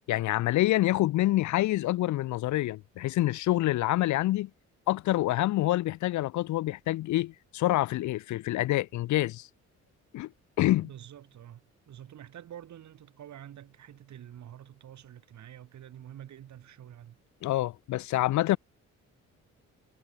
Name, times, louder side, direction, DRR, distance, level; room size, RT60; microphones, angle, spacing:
voice 1, 0.1-4.5 4.9-9.5 10.1-10.3 10.6-10.9 17.4-18.6, left 16 dB, 70° left, 0.6 m, -27 dB
voice 2, 10.8-17.2, right 11 dB, 70° right, 5.2 m, -48 dB
cardioid pair, 90°, 30 cm